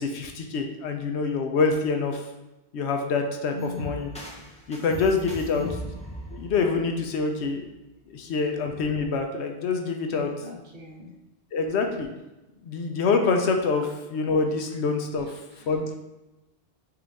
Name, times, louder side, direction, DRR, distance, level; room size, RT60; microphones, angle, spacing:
voice 1, 0.0-2.2 2.7-4.1 4.7-5.7 6.3-7.7 8.1-10.3 11.5-12.1 12.6-13.8 14.1-15.3 15.7-15.9, left 4 dB, 80° left, 4 dB, 0.9 m, -26 dB
voice 2, 3.5-3.9 5.5-5.9 10.1-11.1 15.2-15.9, left 2 dB, 55° right, 0 dB, 0.7 m, -40 dB
sound 1, 3.6-7.5, equal, 10° left, 0.4 m, -39 dB
4.6 x 2.5 x 3.4 m, 0.99 s
omnidirectional pair, 1.1 m